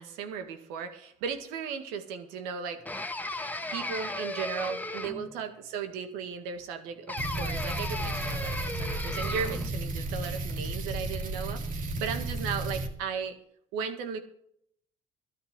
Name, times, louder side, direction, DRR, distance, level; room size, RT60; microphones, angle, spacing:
voice 1, 0.0-3.0 3.7-13.3 13.7-14.2, right 6 dB, 90° right, 7 dB, 1.9 m, -36 dB
sound 1, 2.9-5.4 7.1-9.7, left 2 dB, 10° left, 1.4 m, -36 dB
sound 2, 7.2-12.9, right 2 dB, 60° right, 2.5 m, -33 dB
13.0 x 9.6 x 7.5 m, 0.68 s
supercardioid pair, 70°, 15 cm